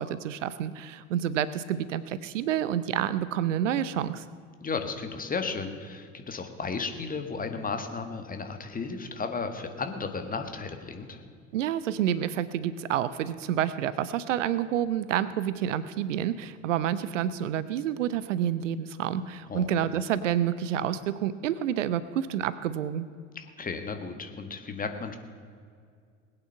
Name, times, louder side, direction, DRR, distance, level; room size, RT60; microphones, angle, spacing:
voice 1, 0.0-4.2 11.5-23.1, right 10 dB, 65° right, 15 dB, 0.7 m, -29 dB
voice 2, 4.6-11.2 19.5-19.7 23.3-25.2, left 4 dB, 20° left, 6 dB, 1.6 m, -34 dB
20.5 x 8.9 x 5.6 m, 2.2 s
figure-of-eight pair, 65°, 40 cm